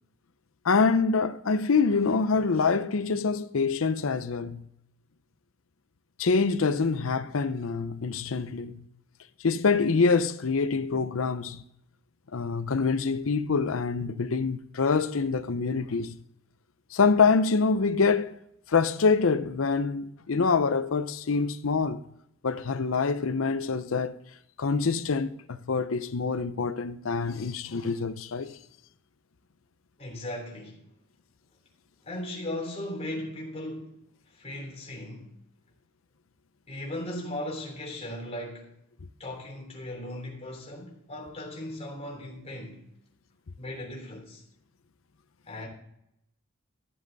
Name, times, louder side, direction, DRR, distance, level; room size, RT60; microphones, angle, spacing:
voice 1, 0.6-4.7 6.2-8.8 9.4-11.6 12.3-16.2 16.9-18.3 18.7-22.0 22.4-24.1 24.6-28.6, left 4 dB, 85° left, 0.6 m, -25 dB
voice 2, 30.0-30.8 32.0-34.0 34.3-35.3 36.7-38.8 39.2-42.8 43.6-44.4 45.5-45.7, left 1 dB, 30° left, 3.4 m, -37 dB
14.0 x 7.6 x 4.0 m
head